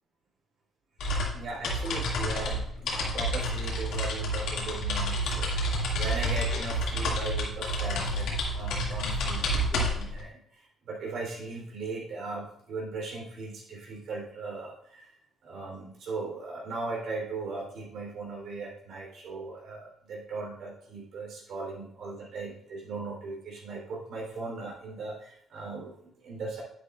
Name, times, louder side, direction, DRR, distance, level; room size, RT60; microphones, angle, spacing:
sound 1, 1.0-10.2, equal, 85° left, 2.1 m, -29 dB
voice 1, 1.3-15.1 15.4-26.6, right 3 dB, 70° right, -1 dB, 3.3 m, -38 dB
9.7 x 8.7 x 2.4 m, 0.70 s
cardioid pair, 90°, 0 cm